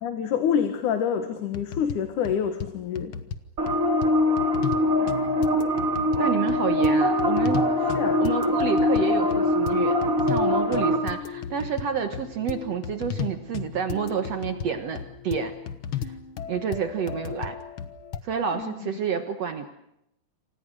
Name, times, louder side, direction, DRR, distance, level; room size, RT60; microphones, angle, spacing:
voice 1, 0.0-3.2 7.8-8.2 18.5-19.0, left 8 dB, 75° left, 7 dB, 3.1 m, -27 dB
sound 1, 1.5-2.0 2.2-2.7 3.0-3.4 3.7-4.1 4.4-4.8 5.1-18.2, left 8 dB, 55° left, 1.6 m, -35 dB
sound 2, 3.6-11.0, left 1 dB, 25° right, 2.9 m, -23 dB
voice 2, 6.2-7.6 8.2-10.0 10.3-15.5 16.0-16.1 16.5-17.6 18.2-19.7, right 7 dB, 60° right, 7 dB, 2.2 m, -29 dB
28.5 x 25.5 x 6.4 m, 0.79 s
omnidirectional pair, 3.7 m